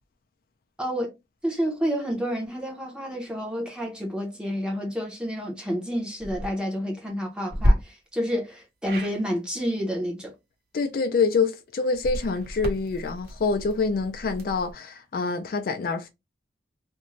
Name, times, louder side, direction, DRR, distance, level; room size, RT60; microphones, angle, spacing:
voice 1, 0.8-1.2 1.4-10.3, equal, 5° right, 0.7 m, -29 dB
sound 1, 6.1-6.5 7.5-7.7 8.8-9.1 11.9-14.7, equal, 60° right, 1.0 m, -28 dB
voice 2, 10.7-16.1, left 4 dB, 55° left, 0.4 m, -26 dB
2.5 x 2.2 x 3.0 m
head